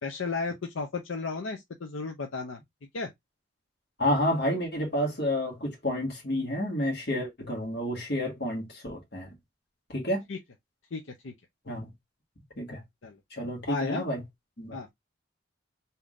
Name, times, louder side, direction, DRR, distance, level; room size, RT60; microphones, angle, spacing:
voice 1, 0.0-2.6 2.9-3.1 10.3-10.4 10.9-11.3 13.0-13.2 13.7-14.0 14.7-14.9, left 4 dB, 80° left, 0.7 m, -34 dB
voice 2, 4.0-9.3 9.9-10.2 11.7-11.9 12.6-12.8 13.3-14.2 14.6-14.9, left 1 dB, 50° left, 1.7 m, -30 dB
3.6 x 2.8 x 3.6 m
head